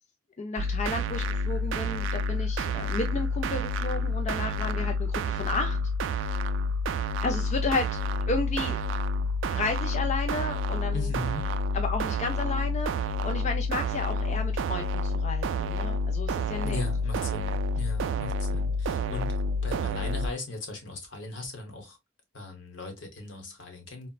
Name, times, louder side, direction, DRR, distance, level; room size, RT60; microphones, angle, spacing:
voice 1, 0.4-5.8 7.2-8.0 8.3-8.8 9.5-11.1 11.7-16.8, left 3 dB, 35° left, 0.4 m, -32 dB
sound 1, 0.6-20.3, left 1 dB, 75° right, 0.3 m, -29 dB
voice 2, 10.9-11.5 16.6-22.0 22.3-24.1, left 2 dB, 75° left, 1.1 m, -38 dB
4.1 x 2.1 x 2.3 m
head